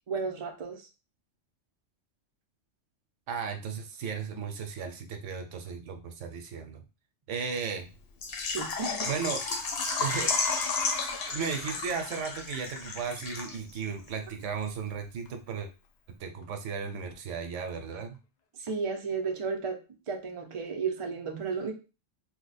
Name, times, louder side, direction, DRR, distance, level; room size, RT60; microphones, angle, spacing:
voice 1, 0.1-0.9 8.5-9.1 18.6-19.8 20.1-21.7, right 5 dB, 40° right, 2 dB, 0.4 m, -33 dB
voice 2, 3.3-6.8 7.3-7.9 9.0-9.4 10.0-10.4 11.3-15.7 16.2-18.2, right 6 dB, 75° right, 6 dB, 0.9 m, -35 dB
Water / Liquid, 8.2-13.8 14.1-14.2 14.6-14.7, left 4 dB, 60° left, 0.7 m, -32 dB
Livestock farm animals working animals, 9.6-12.3 12.6-12.9 13.2-13.3 14.0-14.1 14.3-14.4 14.6-14.7 15.3-15.5 16.1-16.2 16.4-16.5 16.7-16.8 17.0-17.1 17.6-17.7 18.1-18.2 18.7-18.8, left 3 dB, 75° left, 0.4 m, -41 dB
2.7 x 2.2 x 4.0 m, 0.31 s
omnidirectional pair, 1.3 m